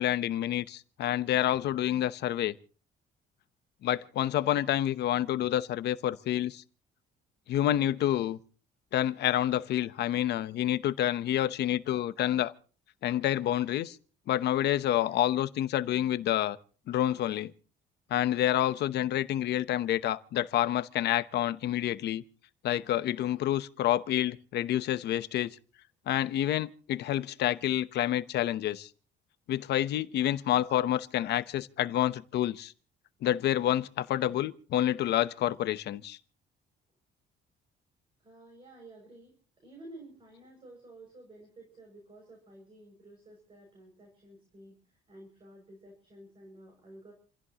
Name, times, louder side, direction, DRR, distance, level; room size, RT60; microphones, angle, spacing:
voice 1, 0.0-2.5 3.8-6.6 7.5-8.4 8.9-12.5 13.0-14.0 14.3-16.6 16.9-17.5 18.1-22.2 22.6-25.5 26.1-28.9 29.5-32.7 33.2-36.2, left 12 dB, 60° left, 0.9 m, -28 dB
voice 2, 38.2-39.3 39.6-47.1, right 1 dB, 25° right, 6.4 m, -52 dB
28.5 x 16.0 x 3.0 m
cardioid pair, 175°, 20 cm